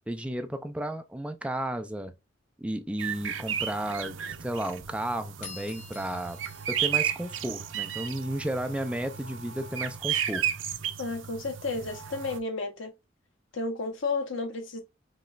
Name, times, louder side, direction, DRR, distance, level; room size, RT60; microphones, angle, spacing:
voice 1, 0.1-2.1 2.6-6.4 6.7-10.5, right 1 dB, 5° right, 0.4 m, -33 dB
sound 1, 3.0-12.4, right 9 dB, 85° right, 0.6 m, -33 dB
sound 2, 5.4-8.0, left 5 dB, 45° left, 1.4 m, -48 dB
voice 2, 11.0-12.9 13.5-14.8, left 3 dB, 85° left, 1.1 m, -32 dB
5.4 x 3.1 x 2.4 m
head